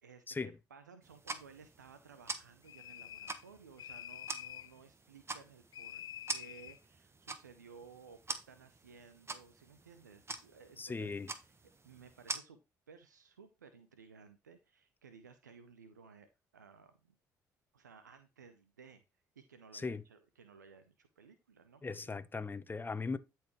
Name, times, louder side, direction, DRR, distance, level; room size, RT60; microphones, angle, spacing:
voice 1, 0.0-6.0 6.3-11.1 11.8-12.6 12.9-16.3 16.5-17.2 17.7-19.0 19.4-21.8, right 5 dB, 90° right, 0.8 m, -57 dB
sound 1, 1.0-12.4, right 3 dB, 25° right, 1.3 m, -46 dB
sound 2, 2.7-3.5 3.8-4.7 5.7-6.8, left 10 dB, 50° left, 0.5 m, -47 dB
voice 2, 10.8-11.3 19.7-20.0 21.8-23.2, left 4 dB, 20° left, 0.9 m, -38 dB
12.0 x 4.7 x 3.1 m
figure-of-eight pair, 50°, 9 cm